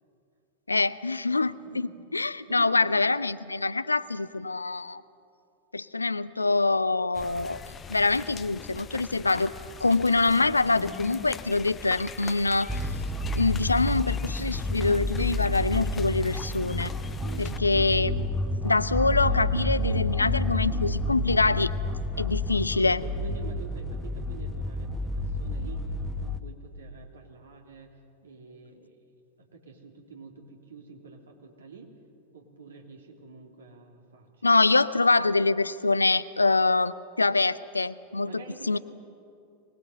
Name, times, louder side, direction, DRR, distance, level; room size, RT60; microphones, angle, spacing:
voice 1, 0.7-5.0 5.7-7.6 7.9-9.5 9.8-12.8 13.4-16.9 17.4-18.3 18.6-21.7 22.2-23.0 34.4-38.8, left 3 dB, 80° left, 16 dB, 0.6 m, -25 dB
voice 2, 1.6-1.9 2.5-2.9 17.2-17.6 19.3-19.5 21.5-21.7 22.8-25.8 26.2-27.9 28.2-28.9 29.4-31.9 32.3-34.5 38.2-38.8, right 4 dB, 70° right, 1 dB, 3.4 m, -47 dB
sound 1, 7.1-17.6, left 6 dB, 20° left, 0.9 m, -42 dB
sound 2, 12.7-26.4, left 1 dB, ahead, 1.1 m, -30 dB
23.5 x 20.0 x 8.1 m, 2.5 s
figure-of-eight pair, 90°, 0 cm